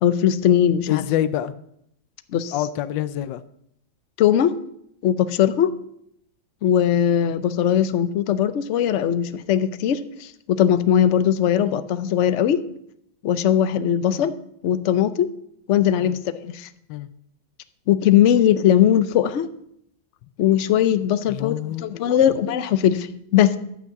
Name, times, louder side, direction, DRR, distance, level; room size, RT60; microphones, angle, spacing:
voice 1, 0.0-1.0 2.3-2.6 4.2-4.6 5.0-5.7 6.6-12.6 13.2-14.3 14.6-15.3 15.7-16.7 17.9-19.5 20.4-23.6, left 10 dB, 60° left, 0.8 m, -19 dB
voice 2, 0.9-1.5 2.5-3.4 11.6-11.7 14.1-14.3 16.0-16.2 16.9-17.1 21.3-22.2, left 12 dB, 80° left, 1.3 m, -27 dB
14.0 x 6.4 x 7.0 m
omnidirectional pair, 2.0 m